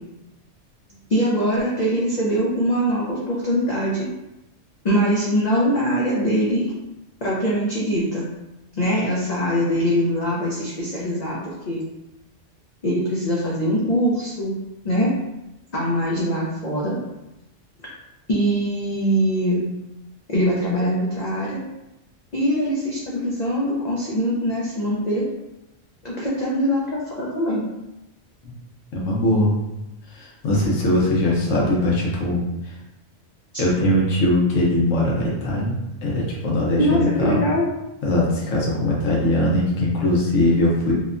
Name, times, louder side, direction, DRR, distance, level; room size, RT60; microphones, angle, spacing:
voice 1, 1.1-4.1 4.8-6.7 7.2-8.3 8.8-11.8 12.8-14.6 14.8-15.1 15.7-17.0 18.3-19.7 20.3-21.6 22.3-25.2 26.0-27.6 33.5-33.6 36.8-37.7, equal, 55° left, -5 dB, 0.4 m, -22 dB
voice 2, 28.9-29.5 30.1-32.4 32.6-32.7 33.6-35.7 36.0-37.4 38.0-40.9, left 1 dB, 80° left, -4 dB, 1.0 m, -21 dB
2.8 x 2.1 x 2.4 m, 0.93 s
omnidirectional pair, 1.3 m